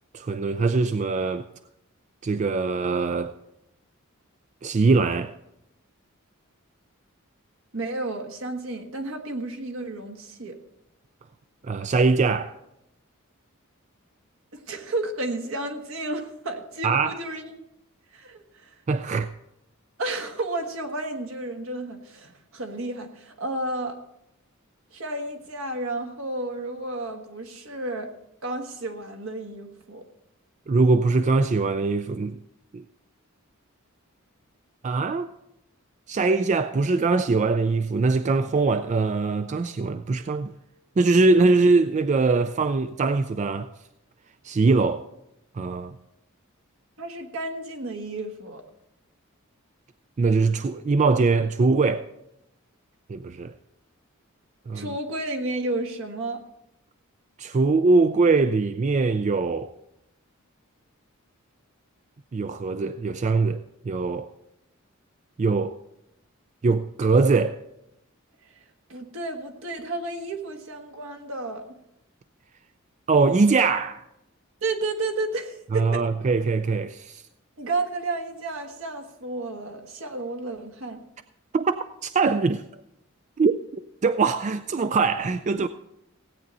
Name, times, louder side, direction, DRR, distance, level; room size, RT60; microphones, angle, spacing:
voice 1, 0.1-1.5 2.2-3.3 4.6-5.4 11.6-12.5 16.8-17.1 18.9-19.3 30.7-32.4 32.7-32.8 34.8-35.3 36.1-40.5 41.0-43.7 44.4-45.0 45.5-46.0 50.2-52.1 53.1-53.5 54.7-54.9 57.4-59.7 62.3-64.3 65.4-65.7 66.6-67.6 73.1-74.0 75.7-77.2 81.5-82.6 83.4-83.6 84.0-85.7, right 3 dB, 35° right, 0.4 m, -22 dB
voice 2, 7.7-10.6 14.5-17.6 18.1-18.8 20.0-24.0 24.9-28.1 28.4-30.0 47.0-48.6 54.7-56.4 68.9-71.7 74.6-76.0 77.6-81.0, right 2 dB, 70° right, 1.5 m, -32 dB
16.5 x 8.9 x 4.1 m
head